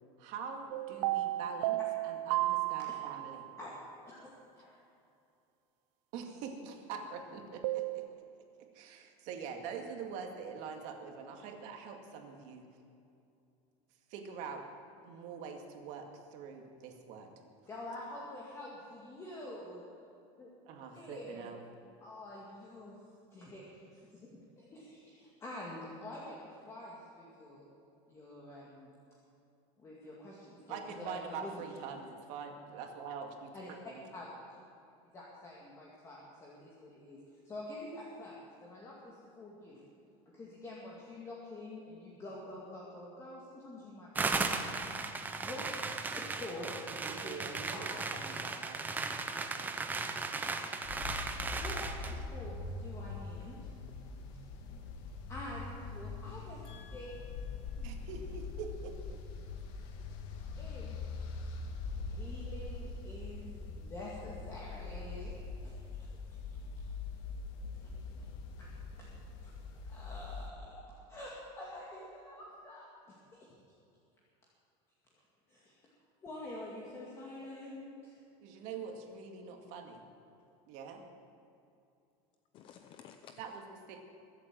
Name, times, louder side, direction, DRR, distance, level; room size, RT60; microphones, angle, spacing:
voice 1, 0.2-3.5 6.1-8.1 8.7-12.7 14.1-14.6 15.0-17.3 20.7-21.6 30.7-33.5 33.9-34.0 46.9-48.8 49.4-49.8 57.8-59.2 78.4-80.0 80.7-81.0 83.4-84.0, right 6 dB, 55° right, 3 dB, 2.2 m, -44 dB
sound 1, 0.7-3.5 7.6-8.1, right 17 dB, 85° right, 0.4 m, -33 dB
voice 2, 3.6-4.3 4.6-4.8 17.7-19.8 20.4-20.5 20.9-21.5 22.0-23.0 23.3-24.3 24.6-26.4 26.6-27.7 28.1-28.9 29.8-31.6 33.5-33.7 34.1-34.6 35.1-37.2 37.4-39.9 40.3-44.5 45.3-46.7 47.2-48.1 51.6-53.7 55.3-56.6 56.9-57.1 60.6-61.0 62.0-66.2 66.8-66.9 68.2-68.3 68.6-68.7 69.0-69.1 69.4-73.5 75.5-75.8 76.2-78.1, left 1 dB, 20° left, -4 dB, 2.2 m, -47 dB
sound 2, 44.2-52.2, right 3 dB, 10° right, 0.8 m, -36 dB
sound 3, 50.8-70.5, left 4 dB, 65° left, 1.8 m, -43 dB
voice 3, 56.6-57.8 82.5-83.4, left 8 dB, 35° left, 7 dB, 0.7 m, -56 dB
22.5 x 8.4 x 7.6 m, 2.7 s
cardioid pair, 170°, 15 cm